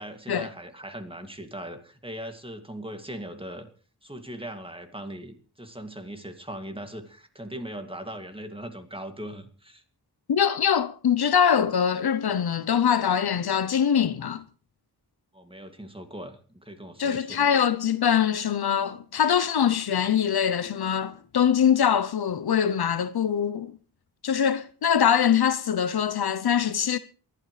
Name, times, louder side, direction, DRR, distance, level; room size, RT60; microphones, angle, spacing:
voice 1, 0.0-3.7 4.0-9.8 15.3-17.5, right 1 dB, 15° right, 2.4 m, -39 dB
voice 2, 10.3-14.4 17.0-23.7 24.2-27.0, left 8 dB, 70° left, 0.8 m, -23 dB
28.0 x 12.0 x 3.3 m
wide cardioid pair, 70°, 40 cm